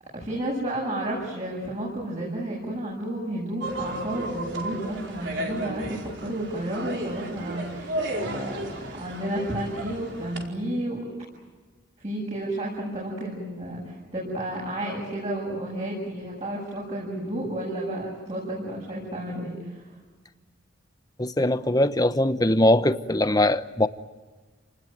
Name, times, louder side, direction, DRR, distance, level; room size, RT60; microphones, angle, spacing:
voice 1, 0.1-11.0 12.0-19.8, right 1 dB, 35° right, 7.5 m, -31 dB
sound 1, 3.6-10.5, right 1 dB, 65° right, 4.8 m, -34 dB
voice 2, 21.2-23.9, left 1 dB, 20° left, 0.9 m, -21 dB
29.5 x 20.0 x 9.3 m
head